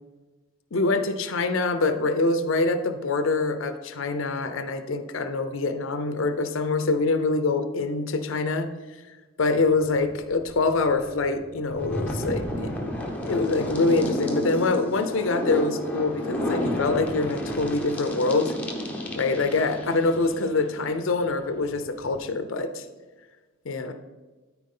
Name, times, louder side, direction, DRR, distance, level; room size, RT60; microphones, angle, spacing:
voice 1, 0.7-8.7 9.4-12.7 13.3-18.5 19.2-22.9 23.7-23.9, left 3 dB, 65° left, 9 dB, 0.6 m, -25 dB
sound 1, 9.6-22.3, left 1 dB, 5° left, 1.0 m, -31 dB
13.0 x 4.6 x 3.8 m, 1.3 s
head